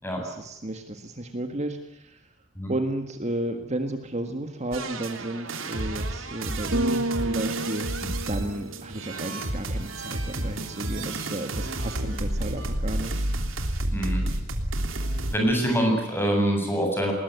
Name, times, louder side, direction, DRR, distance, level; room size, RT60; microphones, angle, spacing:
voice 1, 0.2-2.2 2.7-7.9 8.3-13.3, right 1 dB, 35° right, 7 dB, 1.7 m, -33 dB
sound 1, 4.7-15.4, right 1 dB, 80° right, 3.2 m, -30 dB
Bass guitar, 6.7-9.1, right 2 dB, 65° right, 1.0 m, -30 dB
voice 2, 13.9-14.2 15.3-17.1, equal, 10° left, 2 dB, 8.0 m, -24 dB
21.0 x 20.0 x 9.4 m, 0.92 s
head